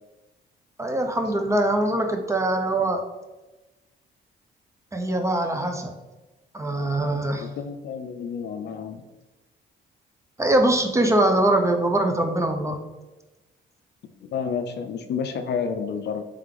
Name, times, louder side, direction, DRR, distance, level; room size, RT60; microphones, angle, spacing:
voice 1, 0.8-3.0 4.9-5.9 6.5-7.5 10.4-12.8, right 1 dB, 15° right, 4 dB, 0.5 m, -22 dB
voice 2, 7.4-9.0 14.2-16.3, left 6 dB, 60° left, 7 dB, 0.4 m, -30 dB
3.4 x 3.3 x 3.6 m, 1.1 s
cardioid pair, 90°, 20 cm